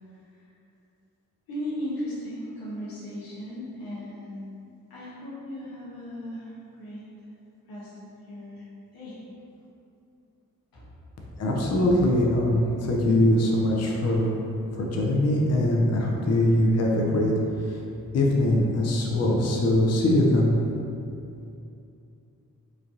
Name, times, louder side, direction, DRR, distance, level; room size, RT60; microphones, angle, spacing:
voice 1, 1.5-4.5 4.9-7.1 7.7-8.7 8.9-9.2 10.7-10.8, left 1 dB, 90° left, -7 dB, 0.8 m, -37 dB
voice 2, 11.4-14.3 14.7-17.3 17.6-17.8 18.1-20.5, left 1 dB, 45° left, -1 dB, 0.5 m, -22 dB
3.1 x 2.2 x 2.6 m, 2.6 s
supercardioid pair, 40°, 35 cm